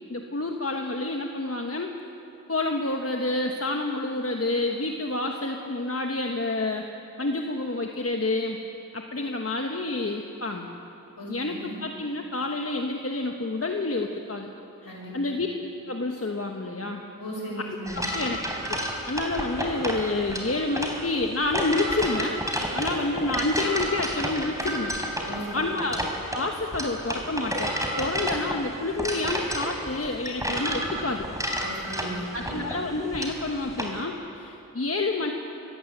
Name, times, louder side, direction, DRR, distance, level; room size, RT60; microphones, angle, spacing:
voice 1, 0.1-1.9 2.5-6.8 7.2-8.6 8.9-10.7 11.3-14.5 14.8-15.5 15.9-17.0 17.9-18.4 18.7-18.8 19.1-22.4 22.7-24.9 25.5-26.0 26.3-31.3 32.3-35.3, left 2 dB, 40° left, 2 dB, 1.3 m, -29 dB
voice 2, 11.2-11.8 14.9-15.2 17.2-18.1 25.2-25.6 31.6-32.7, equal, 90° left, -2 dB, 5.5 m, -36 dB
sound 1, 17.9-34.0, equal, 10° right, 3.8 m, -31 dB
24.5 x 15.0 x 8.1 m, 2.9 s
wide cardioid pair, 50°, 35 cm